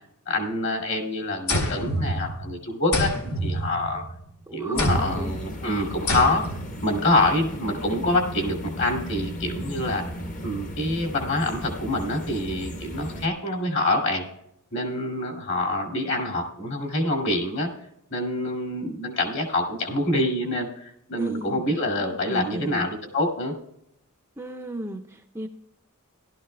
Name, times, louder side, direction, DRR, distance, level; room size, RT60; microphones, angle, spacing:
voice 1, 0.3-3.1 3.4-4.0 4.5-6.5 6.8-10.0 10.4-14.2 14.7-17.7 18.1-23.5, left 1 dB, 55° left, 2 dB, 2.4 m, -26 dB
sound 1, 1.5-2.5 2.9-4.2 4.8-5.3 6.1-6.7, equal, 80° left, 2.2 m, -27 dB
voice 2, 4.5-5.4 21.1-21.6 22.0-23.0 24.4-25.5, right 1 dB, 10° right, 4 dB, 0.4 m, -34 dB
sound 2, 4.7-13.3, equal, 35° left, 0.9 m, -35 dB
16.5 x 12.5 x 2.2 m, 0.75 s
head